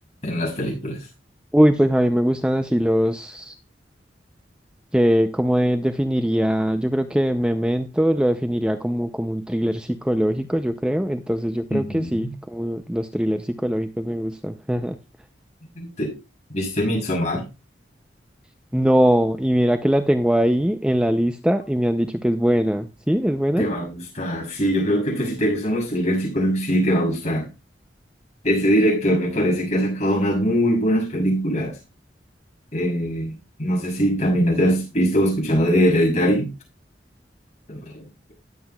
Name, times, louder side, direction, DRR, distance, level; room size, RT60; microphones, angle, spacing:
voice 1, 0.2-1.0 11.7-12.3 15.8-16.1 16.5-17.5 23.6-27.5 28.4-31.8 32.7-33.3 33.6-36.5 37.7-38.0, equal, 40° left, 6.4 m, -22 dB
voice 2, 1.5-3.6 4.9-15.0 18.7-23.7, equal, 5° right, 0.5 m, -21 dB
19.5 x 7.7 x 2.3 m
head